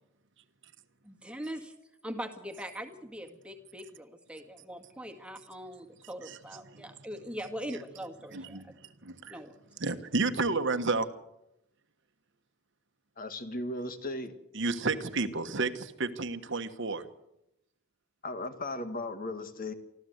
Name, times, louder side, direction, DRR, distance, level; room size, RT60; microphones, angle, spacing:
voice 1, 1.0-1.7 2.0-8.8 9.3-9.5, equal, 5° right, 4 dB, 1.9 m, -41 dB
voice 2, 8.3-9.4 9.8-11.1 14.5-17.0, right 3 dB, 60° right, 9 dB, 1.4 m, -31 dB
voice 3, 13.2-14.3 18.2-19.7, left 2 dB, 45° left, 8 dB, 1.8 m, -36 dB
25.0 x 14.5 x 8.0 m, 0.84 s
head